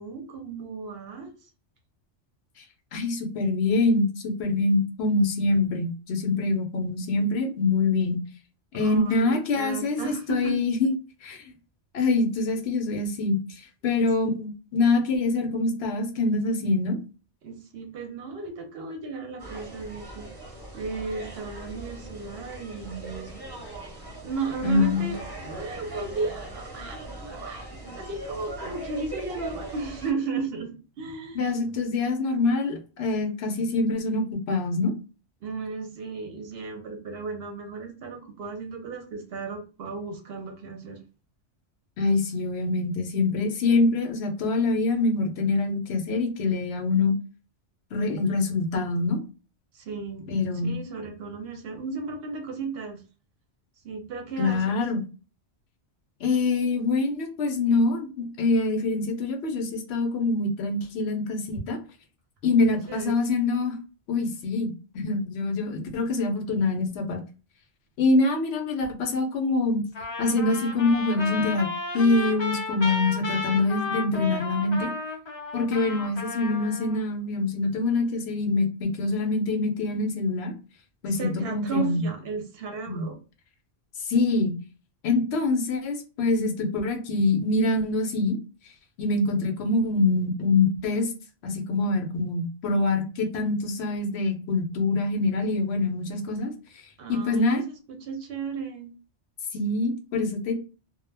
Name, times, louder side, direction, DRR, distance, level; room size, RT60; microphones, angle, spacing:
voice 1, 0.0-1.5 8.8-10.5 14.0-14.1 17.4-23.3 24.2-27.6 27.9-31.5 35.4-41.0 49.7-53.0 53.8-54.8 62.7-63.1 81.2-83.2 97.0-98.9, right 4 dB, 65° right, 4 dB, 0.8 m, -35 dB
voice 2, 2.9-8.2 8.7-10.9 11.2-11.5 11.9-17.0 24.6-25.1 31.3-34.9 42.0-47.1 47.9-49.2 50.3-50.8 54.4-55.0 56.2-61.8 62.4-63.8 64.1-67.2 68.0-69.8 70.2-71.7 71.9-74.9 75.5-80.5 81.0-82.1 82.9-83.1 84.0-84.6 85.0-88.4 89.0-91.1 91.4-96.5 97.1-97.6 99.5-100.5, left 3 dB, 70° left, 4 dB, 0.8 m, -25 dB
sound 1, 19.4-30.1, right 2 dB, 25° right, 0.7 m, -40 dB
Trumpet, 69.9-77.0, left 3 dB, 40° left, 0.4 m, -33 dB
2.1 x 2.0 x 3.2 m, 0.34 s
omnidirectional pair, 1.2 m